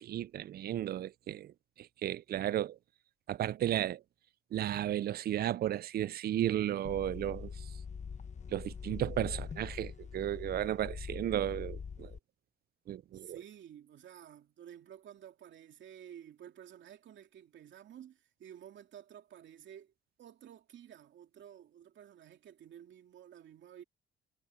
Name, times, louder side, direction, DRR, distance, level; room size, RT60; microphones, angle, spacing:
voice 1, 0.0-2.8 3.3-4.0 4.5-7.5 8.5-12.1 12.9-13.4, right 12 dB, 50° right, 0.4 m, -34 dB
sound 1, 6.8-12.2, left 6 dB, 35° left, 1.1 m, -43 dB
voice 2, 13.1-19.9 20.2-23.8, right 10 dB, 70° right, 2.7 m, -52 dB
cardioid pair, 90°, 20 cm